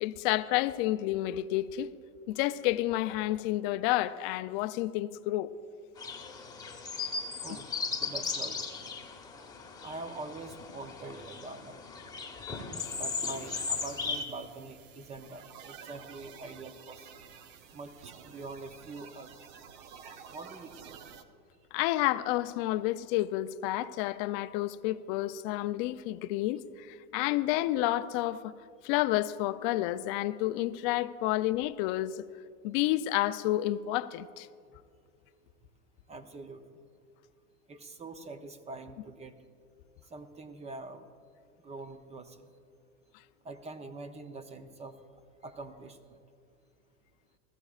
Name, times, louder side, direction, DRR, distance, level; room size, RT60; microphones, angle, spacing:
voice 1, 0.0-1.9 2.3-5.5 21.7-28.5 28.8-32.2 32.6-34.5, left 15 dB, 40° left, 0.5 m, -30 dB
sound 1, 6.0-14.2, left 4 dB, 10° left, 1.2 m, -37 dB
voice 2, 8.0-8.7 9.8-11.8 12.9-17.1 17.7-19.3 20.3-21.0 36.1-36.8 37.7-39.4 40.1-41.1 41.6-42.5 43.4-45.0 45.4-46.2, right 3 dB, 15° right, 0.7 m, -44 dB
sound 2, 12.8-21.2, right 7 dB, 55° right, 0.9 m, -51 dB
20.0 x 14.5 x 2.4 m
hypercardioid pair, 115°, 44 cm